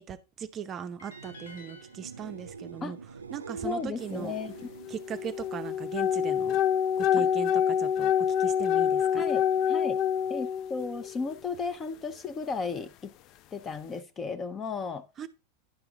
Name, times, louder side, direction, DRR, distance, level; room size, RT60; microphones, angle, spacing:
voice 1, 0.0-3.0 3.3-4.3 4.9-6.6 7.0-8.1 8.4-9.2 15.2-15.3, right 8 dB, 30° right, 0.6 m, -38 dB
sound 1, 0.9-6.7 7.1-7.6 14.7-14.8, right 5 dB, 75° right, 0.4 m, -46 dB
sound 2, 1.0-4.1, left 1 dB, 65° left, 1.4 m, -54 dB
voice 2, 3.6-4.7 7.2-7.3 9.1-10.0 10.3-13.1 13.5-15.0, left 4 dB, 20° left, 0.7 m, -34 dB
sound 3, 4.6-11.3, left 9 dB, 40° left, 0.3 m, -26 dB
10.0 x 5.8 x 3.8 m
figure-of-eight pair, 90°, 0 cm